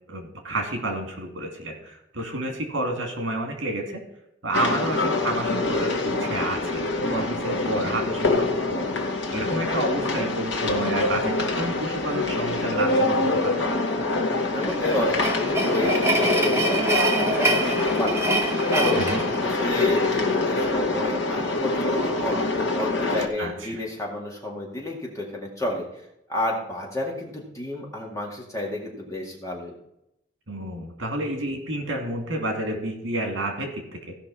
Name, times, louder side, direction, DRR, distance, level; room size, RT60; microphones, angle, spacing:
voice 1, 0.1-4.0 4.4-8.9 9.3-13.6 18.9-19.2 23.4-23.8 30.5-34.2, right 1 dB, 80° right, 3 dB, 2.5 m, -30 dB
sound 1, 4.5-23.3, left 2 dB, 65° left, 1.5 m, -25 dB
voice 2, 14.5-18.3 18.7-19.1 19.4-29.7, left 1 dB, 15° left, -1 dB, 2.1 m, -31 dB
sound 2, 14.6-20.1, right 1 dB, 15° right, 0.8 m, -26 dB
16.5 x 5.7 x 4.2 m, 0.81 s
head